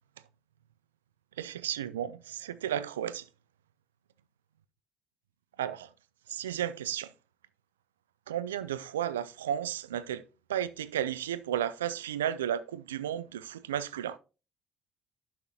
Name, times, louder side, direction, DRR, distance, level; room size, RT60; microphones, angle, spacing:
voice 1, 1.4-3.2 5.6-5.9 6.3-7.1 8.3-10.2 10.5-14.2, right 10 dB, 90° right, 0.4 m, -33 dB
11.5 x 6.5 x 2.9 m
hypercardioid pair, 55°, 0 cm